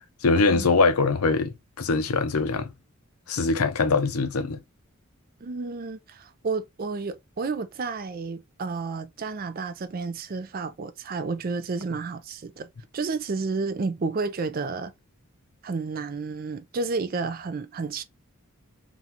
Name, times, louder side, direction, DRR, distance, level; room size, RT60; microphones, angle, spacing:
voice 1, 0.2-2.7 3.3-4.6, left 3 dB, 90° left, 0.7 m, -23 dB
voice 2, 5.4-12.7 12.9-14.9 15.6-18.0, right 4 dB, 40° right, 0.4 m, -31 dB
3.9 x 2.3 x 2.8 m
head